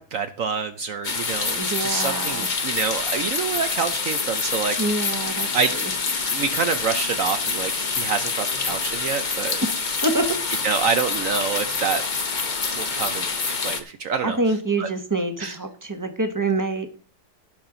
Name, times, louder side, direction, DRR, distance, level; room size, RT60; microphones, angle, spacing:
voice 1, 0.0-4.8 5.5-5.7 6.3-9.6 10.6-12.0 12.7-13.3 13.6-14.4 14.8-14.9 15.4-15.6, right 5 dB, 65° right, 9 dB, 0.8 m, -27 dB
sound 1, 1.0-13.8, left 4 dB, 35° left, 0.8 m, -26 dB
voice 2, 1.6-2.5 4.8-5.8 10.0-10.3 14.2-16.9, right 2 dB, 15° right, 6 dB, 0.8 m, -26 dB
16.5 x 5.8 x 3.8 m, 0.41 s
omnidirectional pair, 1.9 m